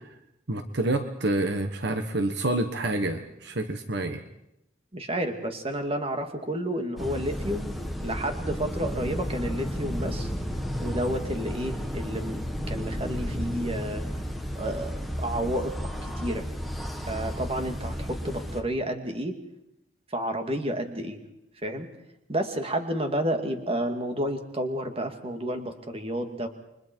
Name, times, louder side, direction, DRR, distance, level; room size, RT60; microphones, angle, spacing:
voice 1, 0.5-4.2, right 2 dB, 65° right, 7 dB, 1.4 m, -28 dB
voice 2, 4.9-10.3 10.8-14.0 14.5-15.7 16.0-16.5 17.0-19.4 20.1-21.2 21.6-21.9 22.3-26.5, right 1 dB, 30° right, 5 dB, 2.4 m, -31 dB
sound 1, 7.0-18.6, equal, ahead, 1.9 m, -33 dB
30.0 x 24.0 x 4.6 m, 0.85 s
head